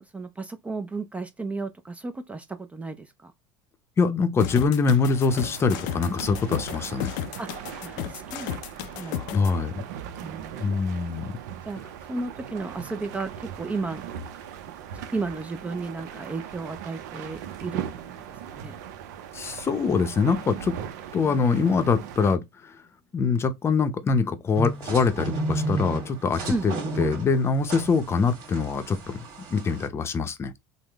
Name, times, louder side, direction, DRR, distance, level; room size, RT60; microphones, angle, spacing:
voice 1, 0.0-3.3 7.4-8.6 8.9-9.3 10.2-10.8 11.7-11.8 12.1-14.0 15.1-17.8 18.5-18.7 26.5-26.7, right 3 dB, 15° right, 0.4 m, -33 dB
voice 2, 4.0-7.1 9.3-9.8 10.6-11.4 19.3-20.8 21.1-22.8 23.1-29.2 29.5-30.5, left 5 dB, 25° left, 0.6 m, -24 dB
sound 1, 4.4-9.5, left 11 dB, 80° left, 0.4 m, -33 dB
sound 2, 5.2-22.4, right 9 dB, 80° right, 0.5 m, -39 dB
sound 3, 24.5-29.9, right 2 dB, 65° right, 1.6 m, -32 dB
3.6 x 2.0 x 3.4 m
supercardioid pair, 100°, 9 cm